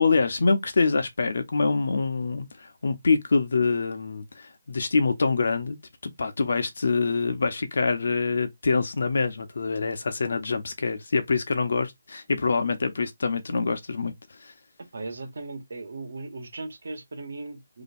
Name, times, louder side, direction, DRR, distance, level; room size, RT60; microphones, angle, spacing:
voice 1, 0.0-5.8 6.0-14.1, left 4 dB, 65° left, 0.9 m, -25 dB
voice 2, 14.9-17.8, right 3 dB, 70° right, 1.1 m, -37 dB
2.9 x 2.3 x 4.2 m
hypercardioid pair, 165°, 0 cm